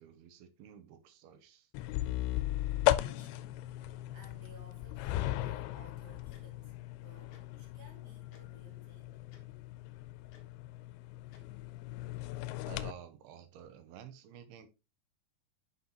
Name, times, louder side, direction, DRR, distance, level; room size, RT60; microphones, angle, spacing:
voice 1, 0.0-1.7 12.7-14.7, right 9 dB, 90° right, 2.9 m, -51 dB
sound 1, 1.7-12.9, left 15 dB, 90° left, 2.5 m, -37 dB
voice 2, 2.9-6.7 7.0-9.1, right 3 dB, 35° right, 1.9 m, -59 dB
Tick-tock, 6.3-6.4 7.3-7.4 8.3-8.4 9.3-9.4 10.3-10.4 11.3-11.4, left 5 dB, 60° left, 2.7 m, -60 dB
9.6 x 5.6 x 2.9 m
omnidirectional pair, 4.4 m